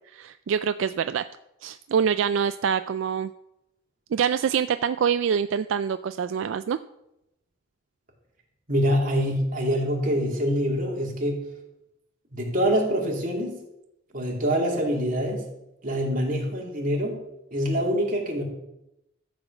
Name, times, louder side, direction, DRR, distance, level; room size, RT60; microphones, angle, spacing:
voice 1, 0.1-1.3 1.6-3.3 4.1-6.8, right 7 dB, 75° right, 11 dB, 0.3 m, -25 dB
voice 2, 8.7-11.5 12.3-13.6 14.1-15.5 15.8-17.2 17.5-18.4, equal, 45° right, -1 dB, 2.7 m, -25 dB
13.5 x 5.0 x 7.2 m, 0.87 s
head